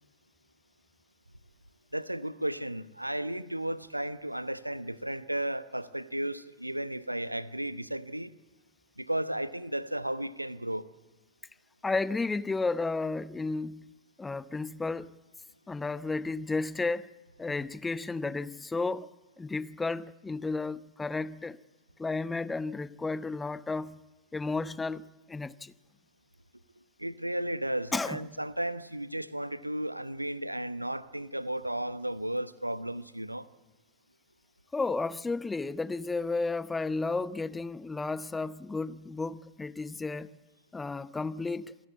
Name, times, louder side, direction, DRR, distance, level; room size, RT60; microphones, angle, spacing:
voice 1, 1.9-8.3 9.0-10.9 27.0-33.5, right 1 dB, 85° right, 1.0 m, -34 dB
voice 2, 11.8-15.2 15.7-17.1 17.4-19.1 19.4-21.6 22.0-24.0 24.3-25.7 27.9-28.4 34.7-40.3 40.7-41.7, left 3 dB, 10° left, 0.8 m, -33 dB
27.5 x 20.5 x 8.4 m
figure-of-eight pair, 90°, 0 cm